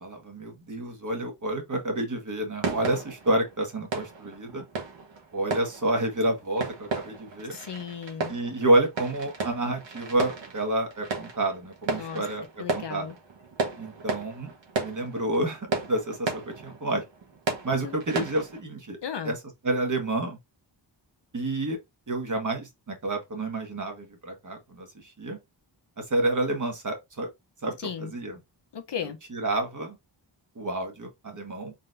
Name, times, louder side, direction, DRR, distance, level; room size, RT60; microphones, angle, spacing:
voice 1, 0.0-4.6 5.3-7.6 8.3-13.1 13.8-14.5 14.8-17.0 17.6-19.0 19.2-19.4 19.6-20.4 21.3-21.8 22.1-25.4 26.0-27.3 27.6-28.3 29.3-30.0 30.5-31.7, right 1 dB, 40° right, 1.5 m, -29 dB
sound 1, 2.6-18.6, right 4 dB, 75° right, 1.4 m, -35 dB
voice 2, 7.5-8.3 11.9-12.2 12.6-13.1 17.8-18.0 19.0-19.3 27.8-28.1 28.7-29.2, left 7 dB, 65° left, 0.9 m, -35 dB
4.1 x 3.7 x 2.7 m
wide cardioid pair, 80°, 45 cm